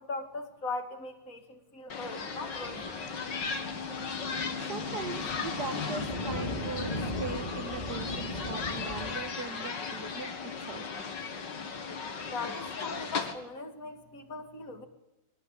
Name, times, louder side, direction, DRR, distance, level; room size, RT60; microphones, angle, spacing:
voice 1, 0.0-2.8 12.3-14.9, left 3 dB, 45° left, 6 dB, 2.8 m, -39 dB
sound 1, 1.9-13.3, left 5 dB, 70° left, 2.7 m, -36 dB
sound 2, 2.4-9.2, left 1 dB, 20° left, 2.7 m, -39 dB
voice 2, 4.7-10.9, right 5 dB, 60° right, 10 dB, 2.0 m, -40 dB
23.5 x 19.0 x 8.1 m, 0.95 s
omnidirectional pair, 2.0 m